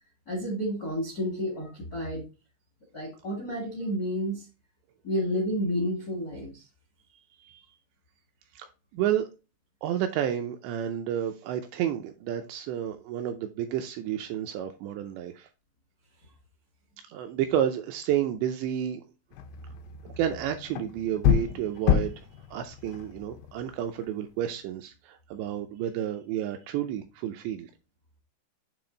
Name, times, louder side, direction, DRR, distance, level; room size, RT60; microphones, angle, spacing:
voice 1, 0.3-2.2 2.9-4.5 5.0-6.6, equal, 75° left, 0.8 m, -30 dB
voice 2, 8.6-9.3 9.8-15.5 17.0-19.0 20.2-27.7, right 10 dB, 80° right, 2.6 m, -31 dB
sound 1, 19.3-24.2, left 9 dB, 90° left, 3.4 m, -29 dB
8.7 x 3.2 x 3.9 m
omnidirectional pair, 5.5 m